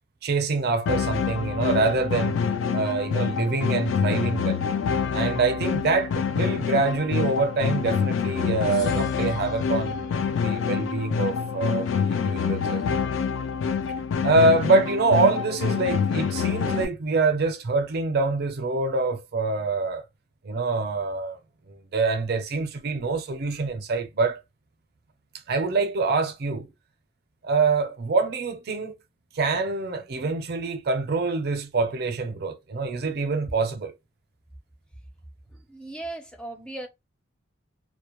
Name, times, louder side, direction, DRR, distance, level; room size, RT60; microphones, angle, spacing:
voice 1, 0.2-2.4 2.7-4.6 5.1-13.0 14.2-20.0 20.4-21.4 21.7-24.4 25.5-26.7 27.4-28.9 29.3-33.9, right 3 dB, 50° right, 0.5 m, -25 dB
sound 1, 0.9-16.9, left 6 dB, 75° left, 0.3 m, -26 dB
voice 2, 35.7-36.9, right 2 dB, 5° left, 0.4 m, -37 dB
2.2 x 2.0 x 2.9 m
head